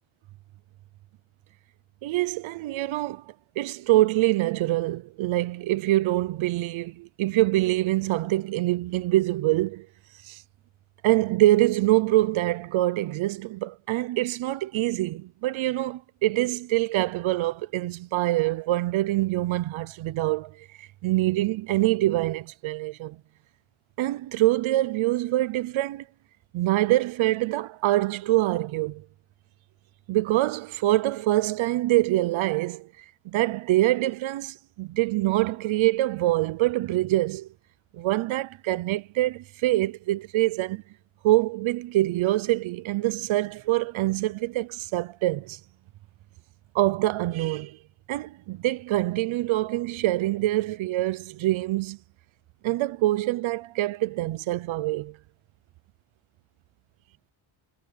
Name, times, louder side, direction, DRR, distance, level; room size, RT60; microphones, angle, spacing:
voice 1, 2.0-3.2 3.6-9.9 10.2-10.4 11.0-23.2 24.0-26.0 26.5-29.0 30.1-32.9 33.2-37.5 37.9-40.8 41.2-45.6 46.7-47.8 48.1-52.0 52.6-55.2, right 16 dB, 80° right, 0.8 m, -25 dB
cardioid pair, 170°, 47 cm